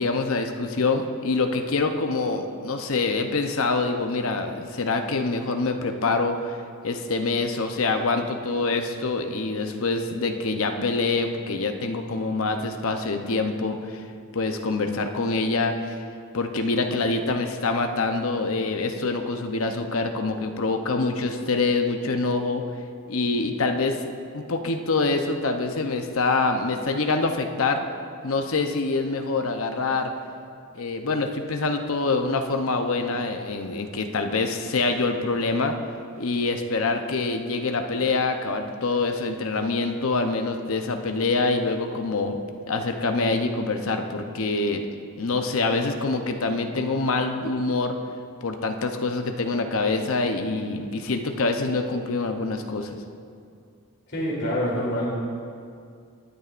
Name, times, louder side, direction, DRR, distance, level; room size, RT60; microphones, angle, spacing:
voice 1, 0.0-6.6 6.8-14.0 14.3-16.0 16.3-22.6 23.1-24.0 24.3-27.8 28.2-30.1 30.7-35.7 36.2-42.4 42.7-44.8 45.2-48.0 48.4-53.0, left 3 dB, 70° left, 5 dB, 0.8 m, -25 dB
voice 2, 54.1-55.2, equal, 50° left, -6 dB, 3.0 m, -26 dB
19.0 x 9.6 x 2.5 m, 2.3 s
head